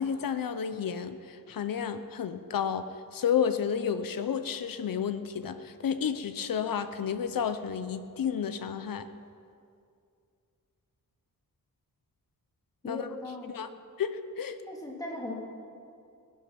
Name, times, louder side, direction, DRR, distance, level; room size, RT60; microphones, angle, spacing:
voice 1, 0.0-9.1 12.8-13.1 13.5-13.7 14.0-14.6, left 7 dB, 75° left, 10 dB, 0.8 m, -31 dB
voice 2, 12.8-13.5 14.6-15.3, left 2 dB, 10° left, -2 dB, 2.6 m, -38 dB
19.5 x 11.5 x 6.0 m, 2.4 s
wide cardioid pair, 160°, 35 cm